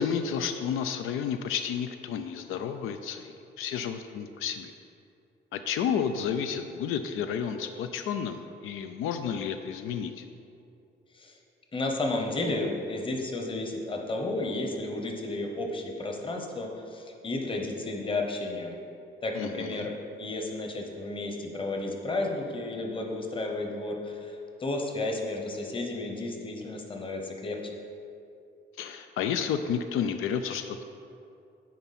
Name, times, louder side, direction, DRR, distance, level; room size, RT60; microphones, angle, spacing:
voice 1, 0.0-4.7 5.5-10.2 19.3-19.9 28.8-30.8, left 7 dB, 85° left, 8 dB, 0.4 m, -31 dB
voice 2, 11.7-18.8 19.2-27.6, left 2 dB, 25° left, 2 dB, 0.9 m, -32 dB
9.3 x 4.5 x 4.1 m, 2.6 s
cardioid pair, 120°, 21 cm